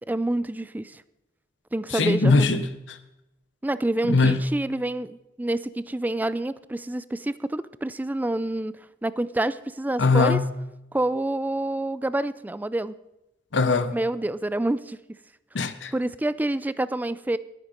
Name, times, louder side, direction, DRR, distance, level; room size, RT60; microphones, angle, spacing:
voice 1, 0.1-1.0 1.7-2.6 3.6-8.8 9.0-10.4 10.9-13.0 13.9-15.0 15.9-17.4, right 1 dB, 10° right, 0.3 m, -27 dB
voice 2, 1.9-3.0 4.0-4.4 10.0-10.5 13.5-14.0 15.5-15.9, left 3 dB, 90° left, 0.8 m, -21 dB
11.0 x 10.5 x 5.2 m
head